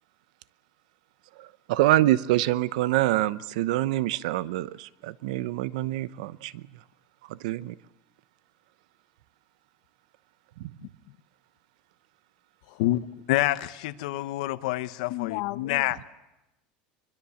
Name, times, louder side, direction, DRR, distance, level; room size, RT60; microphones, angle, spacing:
voice 1, 1.4-6.6 7.3-7.7 10.6-10.7, right 15 dB, 85° right, 0.8 m, -26 dB
voice 2, 10.8-11.2 12.7-12.8 15.1-16.0, left 20 dB, 65° left, 0.8 m, -36 dB
voice 3, 12.8-16.0, left 16 dB, 80° left, 1.0 m, -27 dB
24.0 x 22.0 x 7.1 m
cardioid pair, 170°, 4 cm